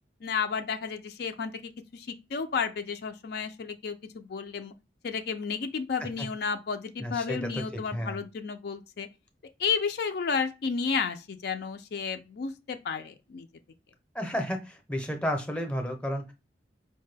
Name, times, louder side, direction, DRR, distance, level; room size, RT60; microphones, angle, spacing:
voice 1, 0.2-4.7 5.0-9.1 9.6-13.5, left 5 dB, 65° left, 0.4 m, -32 dB
voice 2, 7.0-8.2 14.1-16.3, equal, 5° left, 0.6 m, -32 dB
4.9 x 2.2 x 3.2 m
head